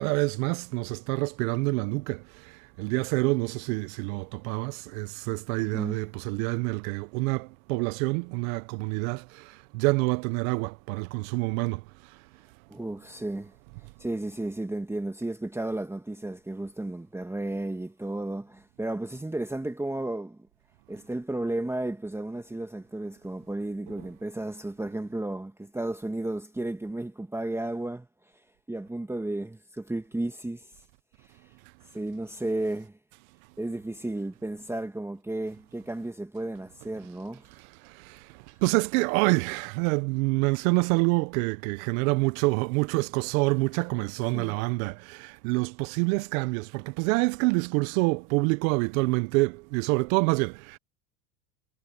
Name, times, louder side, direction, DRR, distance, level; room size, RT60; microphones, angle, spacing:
voice 1, 0.0-12.2 24.0-24.1 37.8-50.8, right 26 dB, 65° right, 0.8 m, -27 dB
voice 2, 5.6-6.0 12.7-13.5 14.0-20.4 20.9-28.4 28.7-30.7 31.2-31.4 31.9-33.0 33.6-37.5 44.3-44.6, right 2 dB, 5° right, 1.6 m, -33 dB
hypercardioid pair, 100°, 45 cm